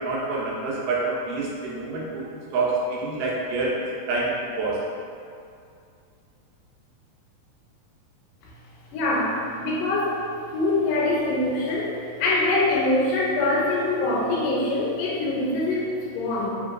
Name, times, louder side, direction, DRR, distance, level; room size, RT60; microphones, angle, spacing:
voice 1, 0.0-4.8, right 3 dB, 90° right, -5 dB, 2.4 m, -27 dB
voice 2, 8.9-10.2 10.5-16.5, left 2 dB, 85° left, -4 dB, 2.3 m, -24 dB
5.2 x 2.9 x 2.5 m, 2.4 s
omnidirectional pair, 3.7 m